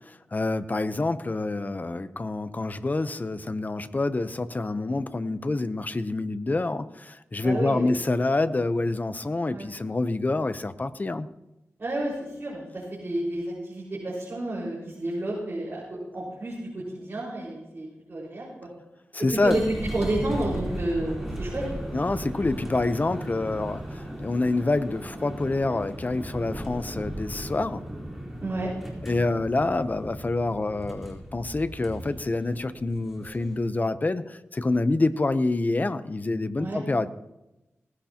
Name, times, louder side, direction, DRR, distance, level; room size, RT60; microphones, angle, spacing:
voice 1, 0.1-11.3 19.1-19.6 21.9-27.8 29.0-37.1, left 2 dB, 35° left, 12 dB, 0.8 m, -27 dB
voice 2, 7.4-7.8 9.5-9.7 11.8-18.5 19.2-19.6 19.9-21.6 28.4-28.7 36.6-36.8, right 1 dB, 45° right, -6 dB, 5.0 m, -31 dB
sound 1, 19.2-33.7, right 1 dB, 5° right, 4.1 m, -37 dB
19.0 x 16.0 x 2.9 m, 0.97 s
wide cardioid pair, 80°, 5 cm